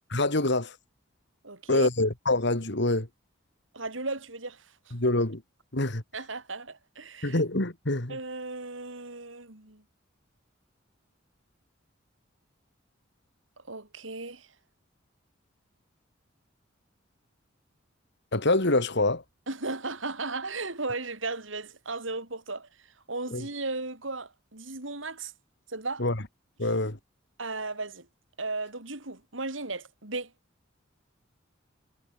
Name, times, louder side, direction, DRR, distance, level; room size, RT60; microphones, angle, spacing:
voice 1, 0.1-0.8 1.7-3.1 4.9-5.4 5.7-6.0 7.2-8.2 18.3-19.2 23.3-23.5 26.0-26.2 26.6-27.0, left 2 dB, 65° left, 2.9 m, -25 dB
voice 2, 1.4-1.9 3.7-4.9 6.1-7.4 8.1-9.8 13.6-14.5 19.5-25.3 25.7-26.0 27.4-28.1 28.4-30.3, right 3 dB, 75° right, 5.1 m, -36 dB
head